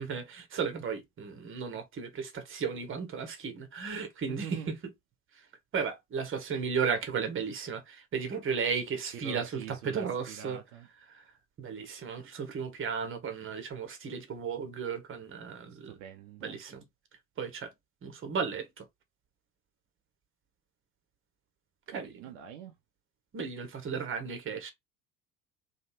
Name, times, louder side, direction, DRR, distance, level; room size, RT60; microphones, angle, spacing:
voice 1, 0.0-4.9 5.3-5.5 5.7-10.6 11.1-11.3 11.6-16.0 16.4-16.8 17.4-17.7 18.0-18.8 21.9-22.1 23.3-24.7, right 6 dB, 25° right, 1.2 m, -35 dB
voice 2, 4.3-4.7 9.2-10.9 15.7-16.6 21.9-22.7, right 9 dB, 60° right, 0.9 m, -45 dB
3.4 x 2.8 x 4.2 m
figure-of-eight pair, 65°, 45 cm